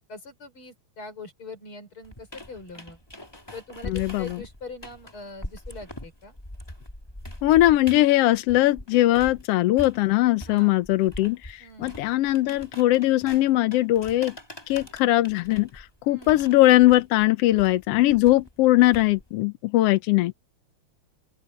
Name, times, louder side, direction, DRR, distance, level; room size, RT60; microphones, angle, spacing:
voice 1, 0.1-3.0 3.5-6.3 10.5-10.7 11.6-12.0 16.1-16.4, left 3 dB, 45° left, 6.4 m, -42 dB
sound 1, 2.0-9.4 9.8-19.4, left 1 dB, 10° left, 2.9 m, -43 dB
voice 2, 3.8-4.4 7.4-14.3 14.7-20.3, left 16 dB, 70° left, 1.5 m, -20 dB
open air
omnidirectional pair, 3.3 m